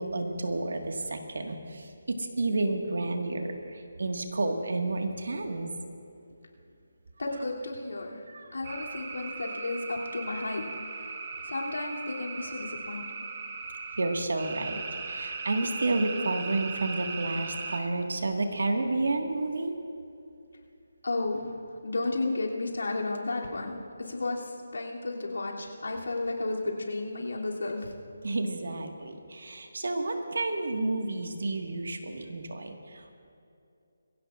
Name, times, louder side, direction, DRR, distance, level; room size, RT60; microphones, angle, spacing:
voice 1, 0.0-5.7 8.3-8.5 14.0-19.7 28.2-33.1, right 2 dB, 75° right, 4 dB, 1.6 m, -31 dB
voice 2, 7.2-8.2 8.5-11.1 11.4-13.2 21.0-27.9, left 2 dB, 90° left, -2 dB, 2.8 m, -33 dB
sound 1, 8.6-17.8, right 4 dB, 35° right, 1.1 m, -38 dB
22.5 x 16.0 x 2.5 m, 2.6 s
hypercardioid pair, 165°, 0 cm